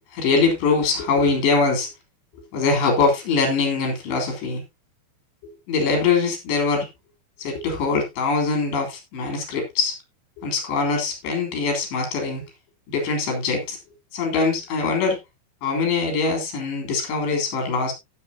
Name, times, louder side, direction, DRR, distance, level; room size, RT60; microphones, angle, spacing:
voice 1, 0.1-1.9 2.5-4.6 5.7-6.9 7.4-10.0 10.4-12.4 12.9-13.8 14.1-15.2 15.6-17.9, left 4 dB, 85° left, 5.8 m, -22 dB
16.0 x 7.2 x 2.8 m
omnidirectional pair, 4.8 m